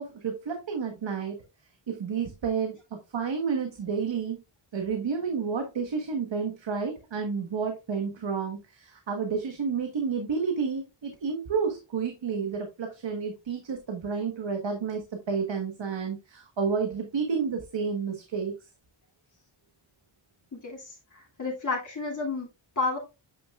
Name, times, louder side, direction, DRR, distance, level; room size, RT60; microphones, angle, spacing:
voice 1, 0.0-1.4 1.9-4.4 4.7-18.5, right 5 dB, 65° right, 1.4 m, -30 dB
voice 2, 20.5-22.5 22.8-23.0, left 3 dB, 40° left, 2.5 m, -31 dB
9.2 x 5.7 x 2.4 m
cardioid pair, 65°, 47 cm